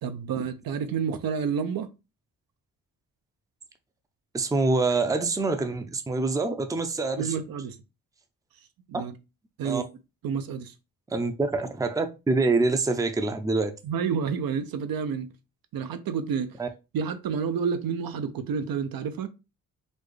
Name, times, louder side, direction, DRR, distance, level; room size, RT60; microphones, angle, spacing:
voice 1, 0.0-1.9 7.2-7.8 8.9-9.1 9.6-9.9 10.2-10.7 13.8-15.3 15.7-16.6 16.9-19.3, right 6 dB, 70° right, 0.7 m, -29 dB
voice 2, 4.3-7.3 9.6-9.8 11.1-13.7 16.6-16.7, right 3 dB, 10° right, 0.5 m, -25 dB
4.2 x 2.3 x 3.2 m
cardioid pair, 80°, 36 cm